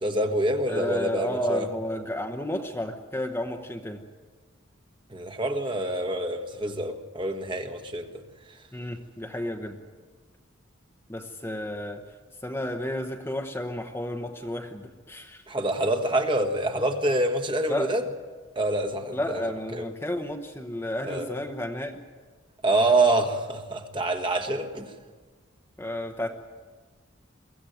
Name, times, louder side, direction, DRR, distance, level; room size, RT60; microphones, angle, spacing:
voice 1, 0.0-1.6 5.1-8.1 15.5-18.0 18.5-19.4 19.7-19.9 21.0-21.3 22.6-24.9, right 2 dB, 25° right, 1.4 m, -26 dB
voice 2, 0.7-4.0 8.7-9.8 11.1-12.0 12.4-15.4 17.7-17.9 19.1-22.0 25.8-26.4, left 1 dB, 10° left, 1.0 m, -32 dB
23.5 x 15.5 x 9.3 m
head